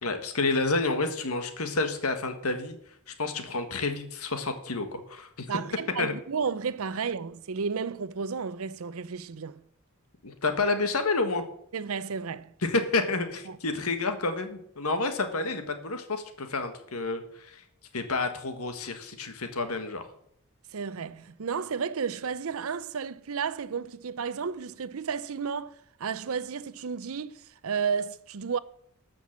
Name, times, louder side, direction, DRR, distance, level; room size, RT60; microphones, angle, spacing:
voice 1, 0.0-2.8 3.1-5.5 6.0-6.1 10.2-11.4 12.6-17.6 17.9-20.1, left 3 dB, 85° left, 1.7 m, -29 dB
voice 2, 5.5-9.6 11.7-12.5 13.5-13.6 20.7-28.6, right 6 dB, 75° right, 0.6 m, -32 dB
13.5 x 6.1 x 7.3 m
head